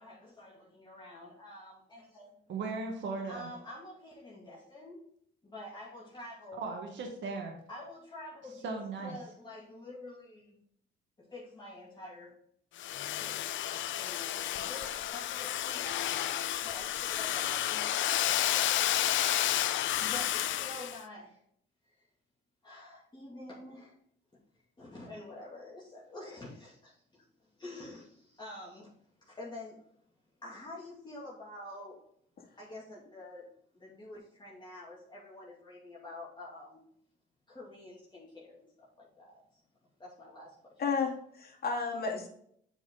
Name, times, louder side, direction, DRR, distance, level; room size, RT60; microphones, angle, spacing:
voice 1, 0.0-2.4 3.3-5.1 5.4-6.7 7.7-8.7 9.0-10.6 11.2-12.4 13.2-18.1 18.4-19.7 20.0-21.4 21.8-22.0 22.6-24.0 24.5-28.9 29.2-29.8 30.4-32.0 32.6-33.5 33.7-36.8 37.5-39.6 40.0-40.8, left 1 dB, 25° left, -6 dB, 2.4 m, -48 dB
voice 2, 2.5-3.5 6.6-7.5 8.6-9.2, right 4 dB, 70° right, 2 dB, 1.5 m, -37 dB
Domestic sounds home sounds, 12.8-21.0, left 12 dB, 75° left, 0.5 m, -31 dB
voice 3, 40.8-42.3, left 5 dB, 50° left, -1 dB, 2.5 m, -32 dB
8.3 x 5.0 x 3.8 m, 0.67 s
cardioid pair, 90°, 20 cm